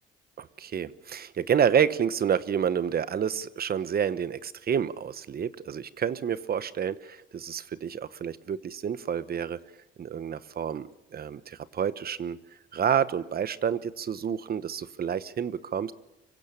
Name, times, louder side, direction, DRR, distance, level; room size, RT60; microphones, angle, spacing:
voice 1, 0.4-9.6 10.0-12.4 12.7-15.9, right 8 dB, 50° right, 15 dB, 1.1 m, -29 dB
25.0 x 16.5 x 8.7 m, 0.92 s
cardioid pair, 90°, 20 cm